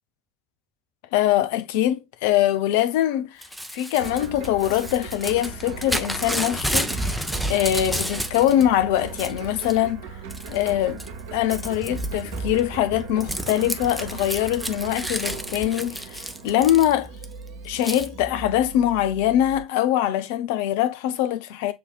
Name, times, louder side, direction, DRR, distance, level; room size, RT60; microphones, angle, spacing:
voice 1, 1.1-3.4 3.7-10.0 10.5-11.0 11.3-17.1 17.6-21.7, left 12 dB, 65° left, 0.5 m, -23 dB
Crumpling crinkling / Tearing, 3.4-8.6 9.0-9.8 10.3-10.7 11.0-17.2 17.8-18.1, equal, ahead, 0.7 m, -31 dB
sound 1, 4.0-19.6, right 4 dB, 70° right, 1.0 m, -37 dB
6.9 x 2.8 x 2.3 m
figure-of-eight pair, 65°, 0 cm